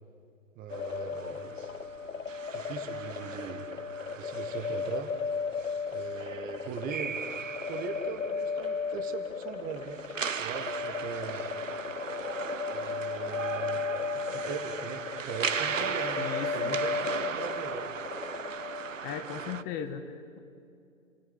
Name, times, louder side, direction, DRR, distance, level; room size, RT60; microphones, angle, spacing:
voice 1, 0.5-1.6 2.5-3.7 4.1-5.1 5.9-7.2 7.7-10.0 10.4-11.5 12.7-13.9 14.1-17.9, right 7 dB, 20° right, 8 dB, 1.6 m, -40 dB
sound 1, 0.7-19.1, left 5 dB, 85° left, 0.7 m, -35 dB
sound 2, 0.7-19.6, right 7 dB, 70° right, 1.0 m, -38 dB
voice 2, 16.2-16.8 19.0-20.4, left 8 dB, 25° left, 7 dB, 1.5 m, -38 dB
29.5 x 18.0 x 9.6 m, 2.4 s
figure-of-eight pair, 115°, 40 cm